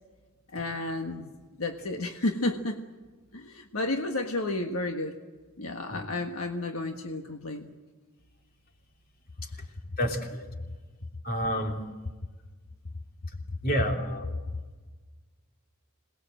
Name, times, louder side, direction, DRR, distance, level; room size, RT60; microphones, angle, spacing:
voice 1, 0.5-1.3 1.6-2.8 3.3-5.1 5.6-7.7, left 2 dB, 70° left, 4 dB, 1.6 m, -31 dB
voice 2, 10.0-10.5 11.2-11.8 13.6-14.3, equal, 40° left, 3 dB, 3.2 m, -29 dB
27.0 x 20.0 x 7.8 m, 1.3 s
head